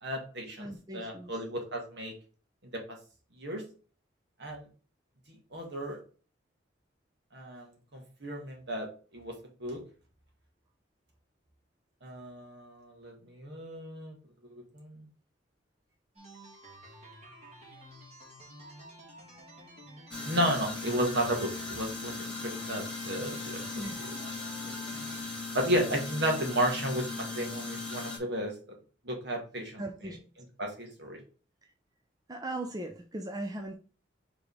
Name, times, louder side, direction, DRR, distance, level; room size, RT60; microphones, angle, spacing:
voice 1, 0.0-2.1 2.7-3.0 3.4-3.6 4.4-4.7 5.3-6.0 7.3-7.7 7.9-8.9 9.1-9.8 12.0-14.2 14.4-15.1 20.2-23.8 25.5-28.5 29.0-30.1 30.6-31.2, equal, 60° right, 1 dB, 2.1 m, -33 dB
voice 2, 0.6-1.3 23.7-24.0 29.8-30.2 32.3-33.7, right 1 dB, 20° right, 3 dB, 0.6 m, -38 dB
sound 1, 16.1-25.2, right 1 dB, 35° right, 2.4 m, -50 dB
sound 2, 20.1-28.2, left 3 dB, 5° left, 2.1 m, -38 dB
5.0 x 3.9 x 4.8 m, 0.38 s
head